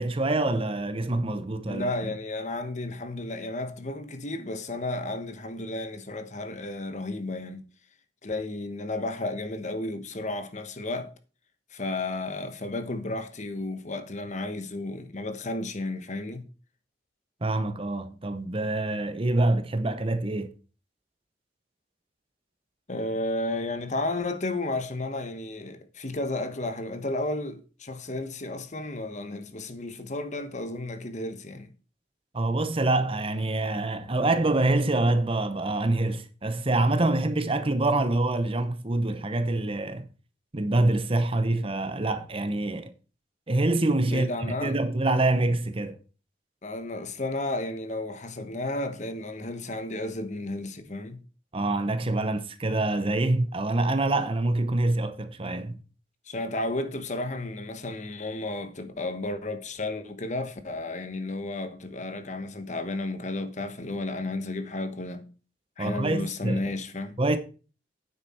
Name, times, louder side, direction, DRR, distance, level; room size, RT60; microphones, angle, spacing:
voice 1, 0.0-2.1 17.4-20.5 32.3-40.1 40.5-42.9 43.5-44.3 44.6-46.0 51.5-55.8 65.8-66.7 67.2-67.4, right 2 dB, 30° right, 0.9 m, -26 dB
voice 2, 1.7-7.6 8.2-11.1 11.7-16.4 22.9-31.7 44.1-44.7 46.6-51.2 56.3-65.2 65.8-67.2, left 2 dB, 40° left, 1.2 m, -33 dB
9.6 x 7.9 x 4.3 m
head